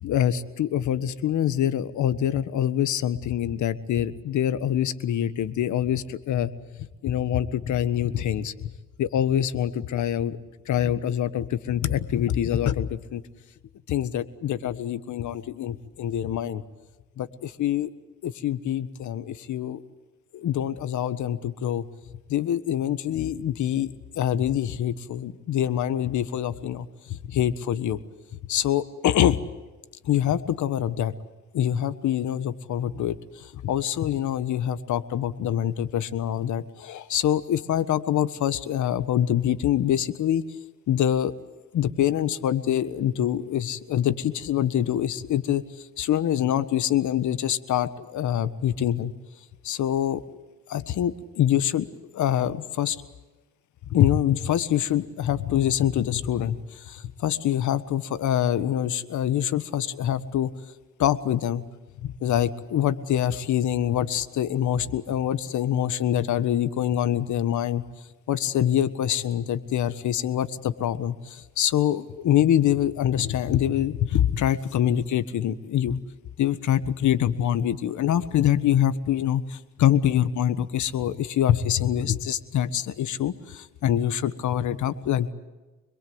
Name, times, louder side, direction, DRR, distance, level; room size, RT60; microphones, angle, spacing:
voice 1, 0.0-6.5 7.0-8.5 9.0-10.4 10.7-13.2 13.9-16.6 17.2-17.9 18.2-19.8 20.3-21.8 22.3-28.0 28.5-29.4 30.0-31.1 31.5-40.4 40.9-41.3 41.7-45.6 46.0-49.1 49.6-50.2 50.7-51.9 52.1-53.0 53.9-60.5 61.0-61.6 62.0-67.8 68.3-76.0 76.4-85.3, left 10 dB, 75° left, 13 dB, 1.5 m, -25 dB
26.0 x 22.0 x 8.1 m, 1.2 s
cardioid pair, 90°, 30 cm